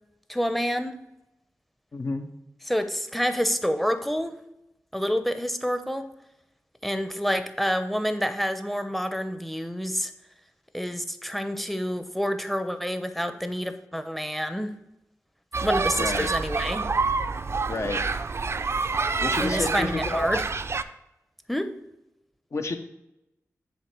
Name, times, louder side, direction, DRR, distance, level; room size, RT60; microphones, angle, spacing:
voice 1, 0.3-1.0 2.7-4.4 4.9-6.1 6.8-10.1 10.7-14.7 15.6-16.8 19.4-20.4 21.5-21.7, equal, ahead, 9 dB, 0.7 m, -28 dB
voice 2, 1.9-2.3 16.0-16.3 17.7-18.0 19.2-20.3 22.5-22.8, left 2 dB, 55° left, 6 dB, 0.9 m, -29 dB
sound 1, 15.5-20.8, right 4 dB, 50° right, 0.4 m, -27 dB
8.1 x 3.4 x 6.0 m, 0.89 s
cardioid pair, 55°, 6 cm